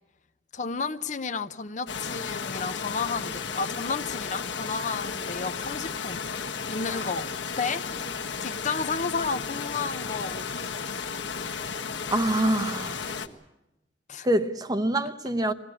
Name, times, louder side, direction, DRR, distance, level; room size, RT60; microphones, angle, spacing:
voice 1, 0.5-6.2 6.7-7.3 7.6-7.8 8.4-10.7 14.1-14.3, left 4 dB, 40° left, 0.7 m, -32 dB
sound 1, 1.9-13.3, left 5 dB, 80° left, 1.3 m, -34 dB
voice 2, 12.1-13.1 14.2-15.5, right 1 dB, 20° right, 0.8 m, -26 dB
22.0 x 16.5 x 9.8 m
head